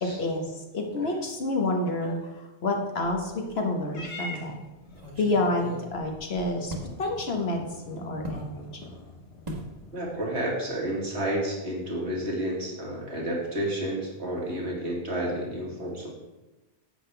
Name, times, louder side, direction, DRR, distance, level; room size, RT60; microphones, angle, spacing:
voice 1, 0.0-4.6 5.2-8.8, left 2 dB, 65° left, 2 dB, 1.5 m, -29 dB
sound 1, 3.0-3.6 4.0-4.1 4.9-6.9 8.2-8.5 9.5-9.7 10.1-10.4 10.6-10.8, right 1 dB, 35° right, 1.5 m, -39 dB
Purr / Meow, 3.9-10.4, left 2 dB, 85° left, 1.4 m, -45 dB
voice 2, 9.9-16.1, right 1 dB, 75° right, -3 dB, 2.4 m, -30 dB
9.9 x 7.9 x 3.4 m, 1.0 s
omnidirectional pair, 1.1 m